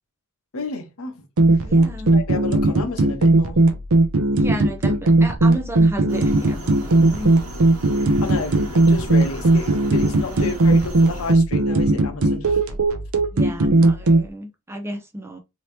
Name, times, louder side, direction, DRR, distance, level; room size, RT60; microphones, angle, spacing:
voice 1, 0.5-1.2 2.1-3.6 8.2-12.6, left 3 dB, 65° left, 0.8 m, -31 dB
sound 1, 1.4-14.2, right 2 dB, 65° right, 0.6 m, -18 dB
voice 2, 1.6-2.2 4.3-7.3 10.3-10.4 13.3-15.4, right 1 dB, 10° right, 0.6 m, -33 dB
sound 2, 6.1-11.3, right 1 dB, 80° right, 1.3 m, -36 dB
3.0 x 2.8 x 3.3 m
head